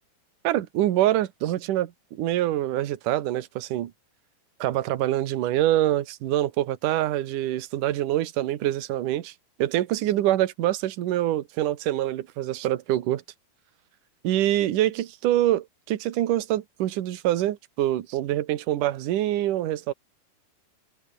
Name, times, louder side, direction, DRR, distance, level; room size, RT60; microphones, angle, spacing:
voice 1, 0.4-3.9 4.6-9.3 9.6-13.2 14.2-19.9, right 13 dB, 65° right, 2.7 m, -25 dB
omnidirectional pair, 4.5 m